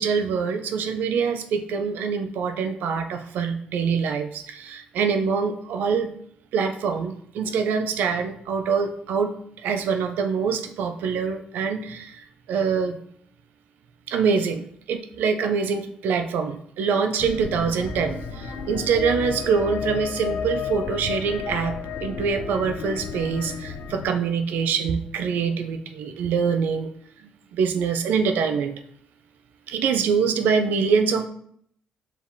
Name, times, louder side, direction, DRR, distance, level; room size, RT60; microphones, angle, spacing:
voice 1, 0.0-6.1 6.5-9.3 9.6-12.2 12.5-13.0 14.1-14.6 14.9-21.7 22.0-26.9 27.5-28.7 29.7-31.3, right 6 dB, 80° right, 8 dB, 0.4 m, -24 dB
sound 1, 17.2-24.0, left 6 dB, 70° left, 0.5 m, -32 dB
5.0 x 3.3 x 2.7 m, 0.67 s
cardioid pair, 75°, 3 cm